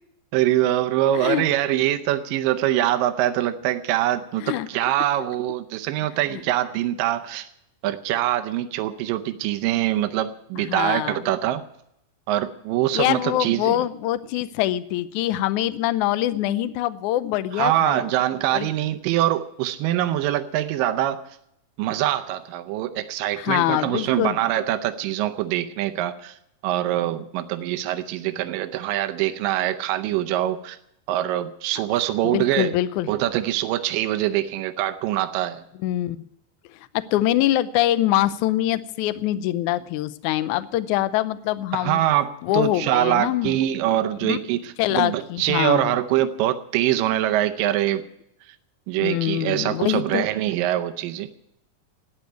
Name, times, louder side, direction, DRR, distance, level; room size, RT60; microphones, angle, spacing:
voice 1, 0.3-7.5 7.8-11.6 12.3-13.8 17.5-21.2 21.8-26.4 26.6-30.8 31.1-32.8 33.1-35.6 41.7-48.0 48.5-48.6 48.9-51.3, right 13 dB, 85° right, 8 dB, 2.5 m, -24 dB
voice 2, 10.6-11.3 12.9-18.0 18.5-18.7 23.4-24.4 32.2-33.1 35.8-36.2 37.1-42.0 42.4-43.6 44.2-44.4 44.8-46.0 49.0-50.3, left 14 dB, 75° left, 14 dB, 2.0 m, -24 dB
13.5 x 9.7 x 9.2 m, 0.79 s
omnidirectional pair, 3.9 m